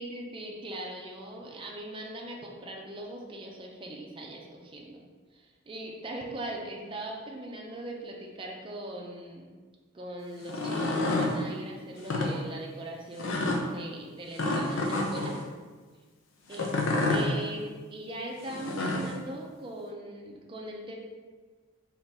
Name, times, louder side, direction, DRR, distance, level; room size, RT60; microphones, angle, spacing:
voice 1, 0.0-5.0 5.3-9.5 9.9-15.4 16.5-20.9, right 1 dB, 25° right, -1 dB, 0.5 m, -40 dB
sound 1, 10.4-11.3 12.0-12.3 13.2-13.6 14.4-15.3 16.5-17.3 18.5-19.1, left 2 dB, 70° left, 0.6 m, -28 dB
3.7 x 2.9 x 4.1 m, 1.4 s
head